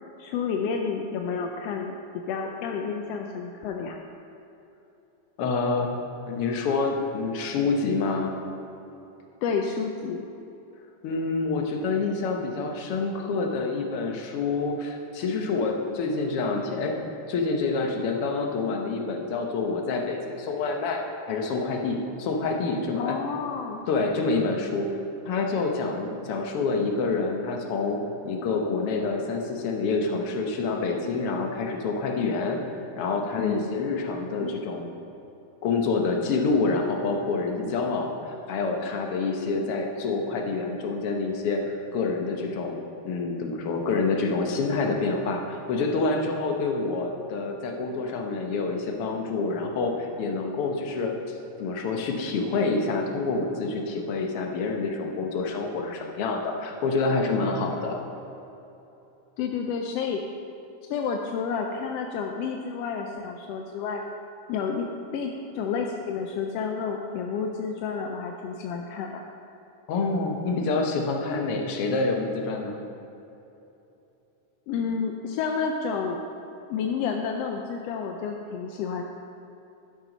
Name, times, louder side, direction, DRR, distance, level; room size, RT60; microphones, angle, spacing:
voice 1, 0.2-4.0 9.4-10.3 23.0-23.8 33.4-33.7 34.4-34.5 59.4-60.2 60.9-64.0 64.5-69.2 74.7-76.2 76.7-79.0, left 6 dB, 75° left, 3 dB, 1.5 m, -30 dB
voice 2, 5.4-5.9 6.3-8.3 11.0-16.9 17.3-23.2 23.9-24.9 25.2-32.6 33.0-34.9 35.6-42.8 43.0-51.1 51.6-58.0 69.9-72.7, left 3 dB, 60° left, 2 dB, 1.8 m, -27 dB
12.0 x 7.8 x 5.3 m, 2.9 s
omnidirectional pair, 3.3 m